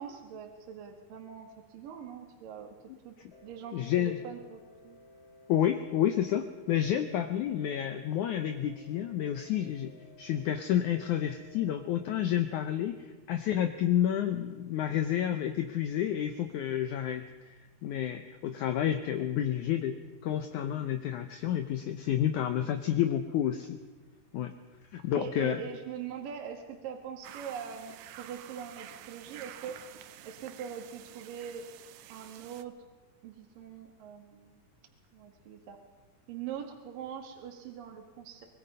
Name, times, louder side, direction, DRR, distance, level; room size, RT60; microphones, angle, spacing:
voice 1, 0.0-1.5 1.7-2.7 3.0-3.1 3.4-5.0 25.1-29.8 30.2-31.7 32.1-32.8 33.2-34.6 35.1-35.8 36.3-38.5, right 7 dB, 60° right, 3 dB, 3.3 m, -42 dB
sound 1, 3.3-12.0, left 2 dB, 40° left, 3.6 m, -57 dB
voice 2, 3.7-4.2 5.5-9.9 10.2-20.0 20.2-23.8 24.3-24.5 24.9-25.6, left 10 dB, 80° left, 7 dB, 1.8 m, -30 dB
sound 2, 27.2-32.6, right 12 dB, 80° right, 2.8 m, -49 dB
24.5 x 21.5 x 5.5 m, 1.3 s
omnidirectional pair, 4.7 m